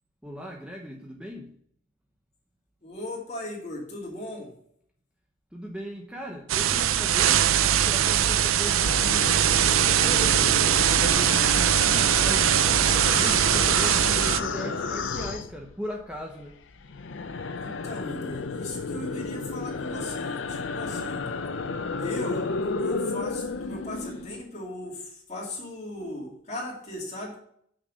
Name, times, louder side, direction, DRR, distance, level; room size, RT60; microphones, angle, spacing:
voice 1, 0.2-1.5 5.5-9.5 10.0-10.5 10.9-16.5, equal, 5° right, 0 dB, 0.7 m, -38 dB
voice 2, 2.8-4.5 11.5-11.7 17.6-21.2 22.0-22.5 22.8-27.3, left 1 dB, 35° left, -2 dB, 2.4 m, -37 dB
sound 1, 6.5-14.4, right 10 dB, 85° right, 0.5 m, -21 dB
sound 2, 8.8-16.1 16.4-24.4, left 4 dB, 65° left, 0.6 m, -32 dB
6.4 x 6.0 x 6.2 m, 0.68 s
head